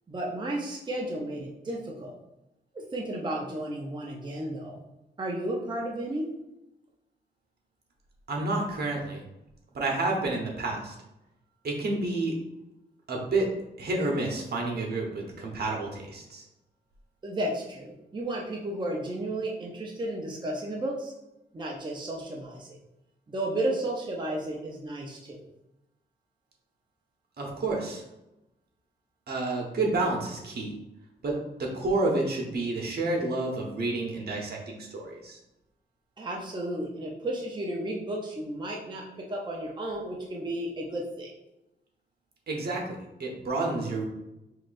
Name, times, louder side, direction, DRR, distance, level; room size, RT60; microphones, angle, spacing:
voice 1, 0.1-2.2 2.7-4.8 5.2-6.3 17.2-21.1 21.5-22.8 23.3-25.4 36.2-41.3, right 1 dB, 25° right, -2 dB, 0.7 m, -33 dB
voice 2, 8.3-9.2 9.7-10.9 11.6-12.4 13.1-13.5 13.8-16.4 27.4-28.0 29.3-30.7 31.2-35.4 42.5-44.1, right 2 dB, 65° right, -1 dB, 1.1 m, -29 dB
5.8 x 3.2 x 2.6 m, 0.91 s
wide cardioid pair, 100°, 18 cm